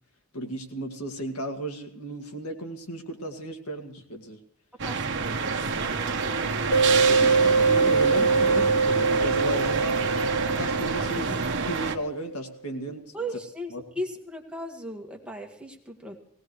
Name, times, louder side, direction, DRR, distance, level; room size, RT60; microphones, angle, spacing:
voice 1, 0.3-4.4 7.1-10.2 10.6-11.2 11.7-13.0 13.7-13.8, right 1 dB, 90° left, 4 dB, 2.2 m, -34 dB
voice 2, 4.8-7.6 11.0-11.3 13.1-16.2, equal, 5° right, 0 dB, 1.9 m, -38 dB
sound 1, 4.8-12.0, right 4 dB, 55° right, 1.1 m, -28 dB
sound 2, 6.7-12.0, right 4 dB, 55° left, 2.3 m, -23 dB
19.0 x 18.5 x 3.3 m, 0.69 s
head